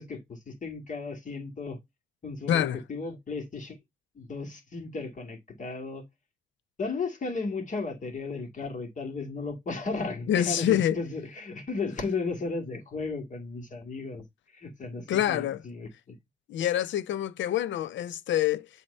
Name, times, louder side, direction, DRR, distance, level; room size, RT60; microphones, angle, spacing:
voice 1, 0.0-1.8 2.2-2.6 2.9-3.8 4.2-6.0 6.8-14.2 14.6-16.2, left 4 dB, 40° left, 2.2 m, -35 dB
voice 2, 2.5-2.8 10.3-11.0 15.1-15.6 16.5-18.7, left 11 dB, 70° left, 0.6 m, -26 dB
7.6 x 2.9 x 5.4 m
cardioid pair, 90°, 20 cm